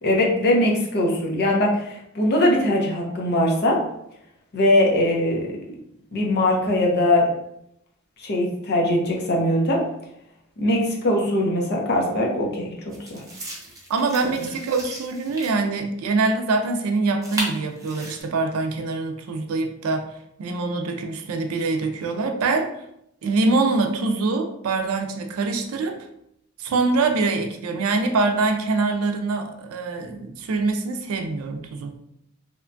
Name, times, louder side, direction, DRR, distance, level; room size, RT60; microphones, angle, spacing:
voice 1, 0.0-3.8 4.5-5.5 6.1-7.3 8.2-9.8 10.6-13.2, left 1 dB, 50° left, 0 dB, 0.6 m, -21 dB
sound 1, 11.3-11.4 12.9-15.5 17.2-18.2, right 1 dB, 15° right, 0.5 m, -35 dB
voice 2, 13.9-20.1 20.4-22.7 23.2-26.1 26.6-31.9, right 3 dB, 90° right, 5 dB, 0.4 m, -24 dB
2.9 x 2.2 x 2.5 m, 0.76 s
head